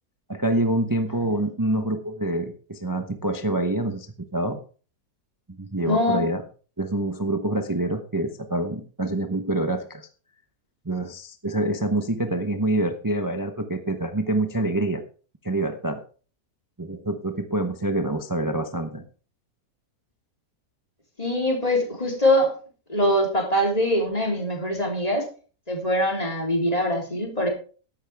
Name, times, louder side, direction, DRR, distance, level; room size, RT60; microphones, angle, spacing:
voice 1, 0.3-4.6 5.6-6.4 6.8-10.1 10.8-15.0 15.4-16.0 16.8-19.0, right 1 dB, 15° right, 7 dB, 0.7 m, -26 dB
voice 2, 5.8-6.3 21.2-22.5 22.9-25.3 25.7-27.5, left 1 dB, 20° left, 0 dB, 3.6 m, -23 dB
13.5 x 11.5 x 3.5 m, 0.38 s
omnidirectional pair, 1.7 m